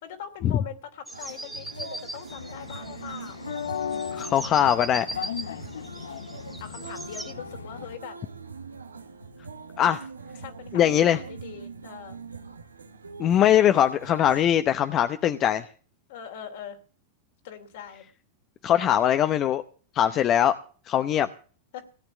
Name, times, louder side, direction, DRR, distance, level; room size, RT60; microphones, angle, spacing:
voice 1, 0.0-3.4 6.6-8.2 10.4-12.2 16.1-16.8 17.4-18.1 20.0-20.1 21.7-21.9, left 9 dB, 65° left, 2.8 m, -41 dB
sound 1, 1.1-7.3, right 1 dB, 5° right, 1.7 m, -40 dB
sound 2, 1.1-14.5, right 5 dB, 90° right, 1.1 m, -43 dB
sound 3, 2.3-8.0, left 8 dB, 80° left, 0.7 m, -37 dB
voice 2, 4.1-5.1 9.8-10.1 10.7-11.2 13.2-15.7 18.6-19.6 19.9-20.5 20.9-21.3, left 10 dB, 35° left, 0.8 m, -21 dB
17.0 x 8.9 x 7.2 m
hypercardioid pair, 95°, 0 cm